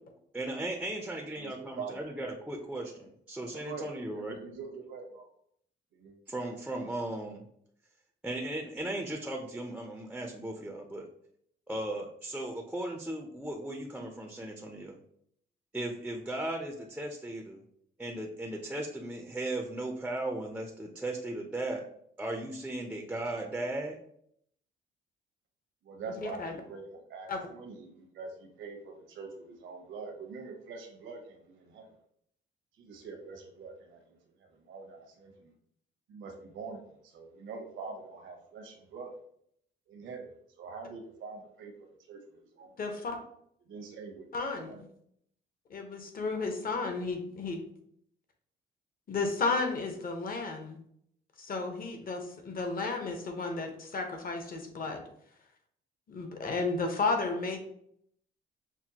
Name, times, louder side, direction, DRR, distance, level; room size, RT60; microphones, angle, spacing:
voice 1, 0.3-4.4 6.3-7.4 8.2-11.1 11.7-15.0 15.7-17.6 18.0-21.8 22.2-24.0, right 1 dB, 5° right, 2 dB, 0.5 m, -37 dB
voice 2, 1.4-2.2 2.9-3.0 3.5-5.2 5.9-6.2 25.8-31.9 32.8-34.2 34.7-35.5 36.1-39.1 39.9-40.3 40.6-41.7 42.1-42.9 43.7-44.3 44.6-44.8, right 4 dB, 75° right, 4 dB, 0.9 m, -44 dB
voice 3, 26.1-26.5 27.3-27.4 42.8-43.2 44.3-44.9 45.7-47.7 49.1-50.8 51.4-55.0 56.1-57.6, left 3 dB, 45° left, 4 dB, 0.9 m, -33 dB
5.9 x 2.1 x 2.8 m, 0.68 s
cardioid pair, 90°, 20 cm